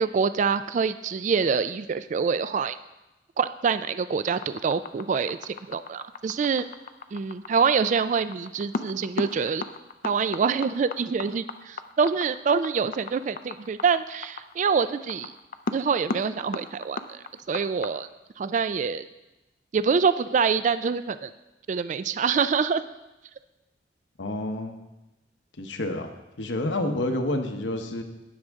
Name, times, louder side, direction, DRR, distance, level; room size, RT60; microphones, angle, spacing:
voice 1, 0.0-2.8 3.4-6.6 7.1-9.6 10.0-15.3 15.7-17.2 17.5-18.1 18.4-19.0 19.7-21.3 21.7-22.8, right 5 dB, 40° right, 13 dB, 0.3 m, -25 dB
sound 1, 4.3-17.9, left 3 dB, 50° left, 0.5 m, -35 dB
voice 2, 24.2-24.8 25.6-26.1 26.4-28.0, left 1 dB, 85° left, 5 dB, 1.0 m, -28 dB
17.5 x 6.4 x 3.6 m, 1.0 s
head